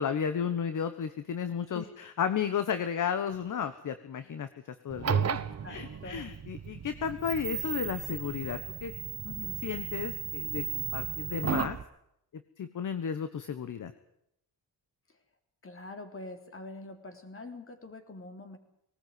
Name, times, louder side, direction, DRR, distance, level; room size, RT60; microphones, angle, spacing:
voice 1, 0.0-5.4 5.7-8.9 9.6-11.8 12.6-13.9, left 7 dB, 50° left, 11 dB, 1.3 m, -33 dB
sound 1, 4.9-11.8, right 8 dB, 40° right, 1.1 m, -34 dB
voice 2, 5.6-6.3 9.2-9.6 15.1-15.2 15.6-18.6, left 3 dB, 30° left, 7 dB, 3.5 m, -45 dB
19.0 x 18.5 x 9.5 m, 0.76 s
cardioid pair, 130°, 40 cm